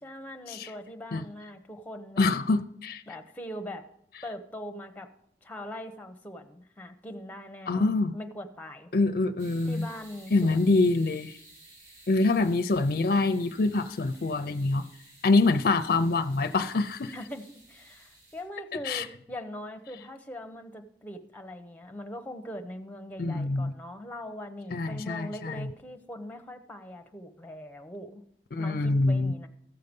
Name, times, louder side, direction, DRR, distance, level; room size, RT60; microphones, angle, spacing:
voice 1, 0.0-2.3 3.1-3.9 4.2-5.1 5.4-8.9 9.6-10.8 17.1-28.2 28.6-29.5, left 1 dB, 10° left, 0.9 m, -41 dB
voice 2, 2.2-3.0 7.7-8.1 8.9-9.9 10.3-11.4 12.1-14.8 15.2-17.1 18.8-19.1 23.2-23.7 24.7-25.7 28.5-29.3, left 3 dB, 55° left, 0.5 m, -25 dB
sound 1, 9.4-18.4, right 2 dB, 75° right, 5.4 m, -55 dB
14.5 x 6.6 x 5.3 m
head